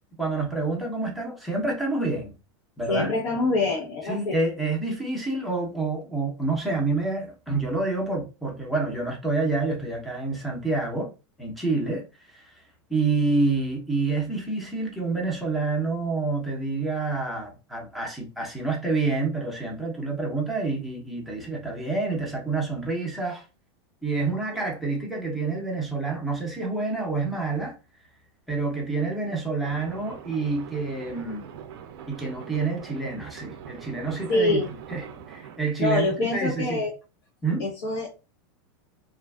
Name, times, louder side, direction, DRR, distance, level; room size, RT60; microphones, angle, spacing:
voice 1, 0.2-2.3 2.8-3.1 4.1-11.1 11.4-12.6 12.9-23.5 24.0-27.8 28.5-31.5 32.1-34.6 34.9-35.0 35.3-36.8 37.4-37.6, right 3 dB, ahead, 0.6 m, -28 dB
voice 2, 2.9-4.4 34.3-34.7 35.8-36.9 37.6-38.1, left 3 dB, 75° left, 0.8 m, -25 dB
sound 1, 29.6-35.6, right 8 dB, 55° right, 0.4 m, -43 dB
2.4 x 2.4 x 2.3 m
supercardioid pair, 160°, 15 cm